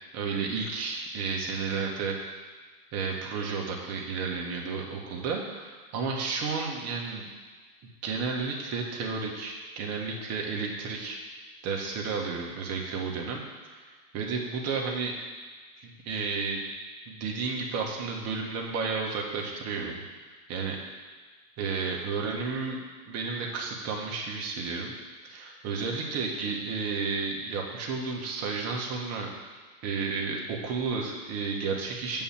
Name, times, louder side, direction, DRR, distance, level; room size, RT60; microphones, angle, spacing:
voice 1, 0.1-2.2 2.9-7.3 8.0-11.2 11.6-13.4 13.7-13.8 14.1-15.2 15.8-16.7 17.1-20.0 20.5-20.8 21.6-24.9 25.2-29.3 29.8-32.2, right 4 dB, 30° right, -1 dB, 1.8 m, -32 dB
8.2 x 5.6 x 7.4 m, 1.4 s
hypercardioid pair, 135°, 49 cm